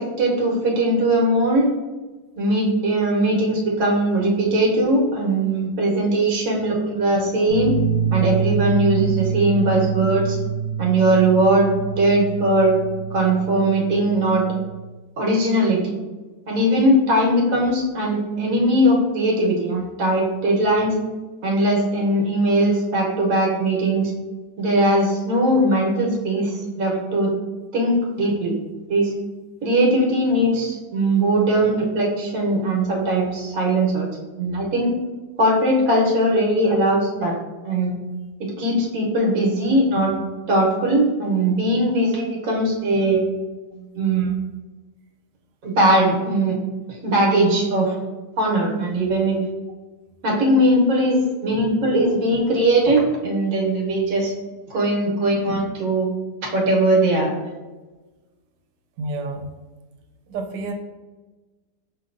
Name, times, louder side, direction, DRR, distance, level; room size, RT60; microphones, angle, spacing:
voice 1, 0.2-1.7 2.4-7.7 8.1-10.4 10.8-12.8 13.1-14.4 15.2-15.9 16.5-20.9 21.4-24.1 24.6-27.3 27.7-28.5 28.9-29.1 29.6-34.1 34.4-34.9 35.4-37.3 37.6-37.9 38.4-40.1 40.5-43.2 43.8-44.3 45.6-46.6 47.0-47.9 48.4-49.4 50.2-54.3 54.7-56.1 56.5-57.3, right 1 dB, 60° right, -2 dB, 1.3 m, -20 dB
sound 1, 7.5-14.7, right 7 dB, 15° left, 0.9 m, -26 dB
voice 2, 59.0-59.5 60.3-60.7, right 2 dB, 85° right, 5 dB, 1.2 m, -29 dB
5.2 x 2.8 x 2.5 m, 1.2 s
omnidirectional pair, 1.8 m